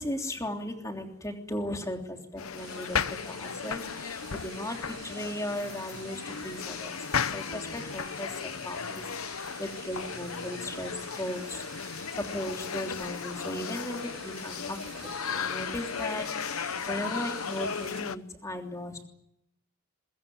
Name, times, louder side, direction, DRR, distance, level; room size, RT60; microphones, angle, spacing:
voice 1, 0.0-7.0 7.3-11.6 12.1-19.0, left 1 dB, 15° left, 3 dB, 3.2 m, -37 dB
sound 1, 2.4-18.2, left 6 dB, 85° left, 0.9 m, -35 dB
sound 2, 2.6-18.0, right 8 dB, 45° right, 3.7 m, -49 dB
22.5 x 22.5 x 9.5 m, 0.76 s
head